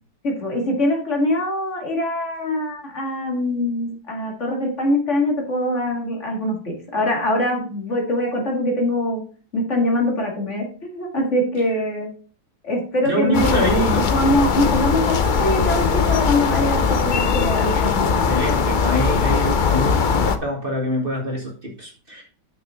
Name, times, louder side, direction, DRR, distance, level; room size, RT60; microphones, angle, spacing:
voice 1, 0.2-9.2 9.5-12.1 12.6-13.7 13.9-18.3, left 1 dB, 40° left, 0 dB, 2.5 m, -23 dB
voice 2, 13.0-14.1 17.7-17.8 18.3-22.2, equal, 30° right, -1 dB, 2.0 m, -25 dB
sound 1, 13.3-20.4, left 5 dB, 75° left, 0.4 m, -20 dB
6.7 x 5.9 x 5.8 m, 0.41 s
omnidirectional pair, 1.9 m